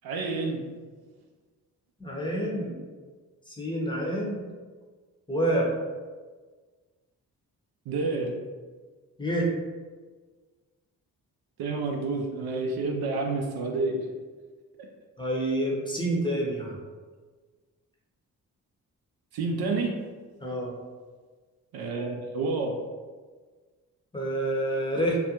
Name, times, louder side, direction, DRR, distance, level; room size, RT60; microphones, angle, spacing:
voice 1, 0.0-0.7 7.9-8.5 11.6-14.1 19.3-20.0 21.7-22.8, right 3 dB, 65° right, 2 dB, 0.5 m, -29 dB
voice 2, 2.0-2.7 3.5-4.4 5.3-5.7 9.2-9.5 15.2-16.8 20.4-20.7 24.1-25.2, right 1 dB, 10° left, -3 dB, 0.7 m, -28 dB
2.5 x 2.2 x 2.8 m, 1.4 s
supercardioid pair, 45°, 41 cm